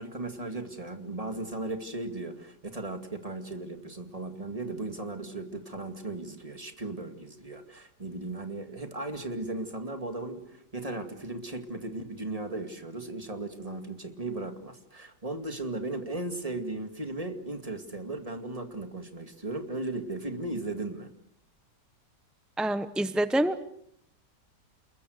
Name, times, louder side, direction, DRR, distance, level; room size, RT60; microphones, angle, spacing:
voice 1, 0.0-21.1, right 2 dB, 20° right, 6 dB, 2.3 m, -36 dB
voice 2, 22.6-23.6, right 1 dB, ahead, 12 dB, 0.3 m, -26 dB
28.5 x 21.5 x 6.6 m, 0.71 s
omnidirectional pair, 1.8 m